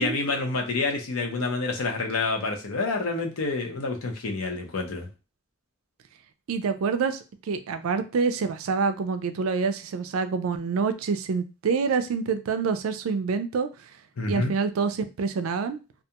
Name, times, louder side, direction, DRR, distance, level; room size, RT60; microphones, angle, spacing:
voice 1, 0.0-5.1 14.2-14.5, left 3 dB, 80° left, 2 dB, 0.7 m, -28 dB
voice 2, 6.5-7.2 7.5-13.7 14.3-15.8, right 5 dB, 70° right, 9 dB, 0.4 m, -26 dB
2.4 x 2.2 x 2.8 m, 0.30 s
head